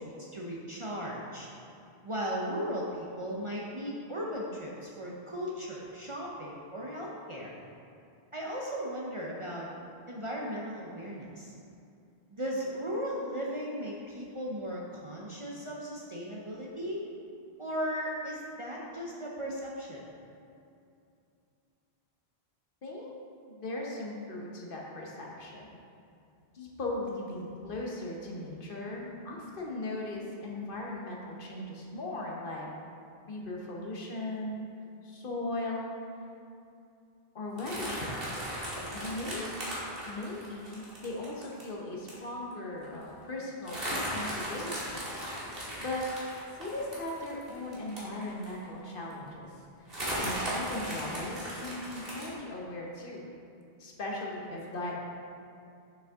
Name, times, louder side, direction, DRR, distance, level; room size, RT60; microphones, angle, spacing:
voice 1, 0.0-1.5 2.0-7.6 8.3-9.7 10.1-11.5 12.3-17.0 17.6-20.0, equal, 35° right, -4 dB, 0.6 m, -36 dB
voice 2, 22.8-23.2 23.5-25.7 26.5-32.7 33.3-34.6 35.0-35.9 37.3-38.4 38.9-39.5 40.0-45.0 45.8-46.1 46.6-49.5 49.8-53.2 53.8-55.1, left 2 dB, 55° left, -2 dB, 1.1 m, -38 dB
sound 1, 37.6-41.6 42.1-42.2 42.5-42.6 42.8-43.1 43.6-48.6 49.1-49.2 49.9-52.3, equal, 60° right, 1.8 m, -37 dB
6.3 x 5.6 x 3.5 m, 2.6 s
omnidirectional pair, 1.1 m